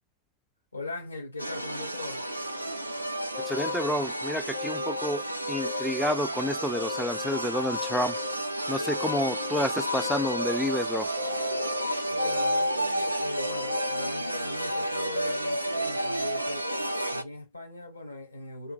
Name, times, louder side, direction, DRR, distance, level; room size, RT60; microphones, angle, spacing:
voice 1, 0.7-2.3 12.1-16.7 17.1-18.7, left 3 dB, 80° left, 1.0 m, -40 dB
sound 1, 1.4-17.2, right 1 dB, 85° right, 0.4 m, -31 dB
sound 2, 3.3-5.2 5.5-7.4 7.8-9.6 10.0-11.8 12.2-14.1, left 19 dB, 65° left, 0.6 m, -41 dB
voice 2, 3.5-5.2 5.5-8.2 8.7-11.1, equal, ahead, 0.4 m, -29 dB
2.7 x 2.6 x 2.4 m
figure-of-eight pair, 90°, 0 cm